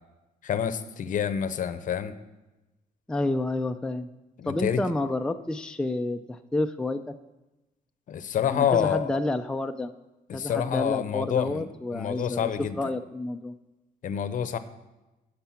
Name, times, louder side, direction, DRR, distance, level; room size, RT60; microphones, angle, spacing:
voice 1, 0.4-2.1 4.4-4.8 8.1-9.1 10.3-11.7 11.9-12.9 14.0-14.6, left 8 dB, 55° left, 12 dB, 0.7 m, -27 dB
voice 2, 3.1-4.1 4.5-7.1 8.5-9.9 10.3-12.5 12.8-13.6, left 2 dB, 5° left, 6 dB, 0.4 m, -29 dB
10.5 x 6.7 x 5.7 m, 1.0 s
cardioid pair, 120°, 16 cm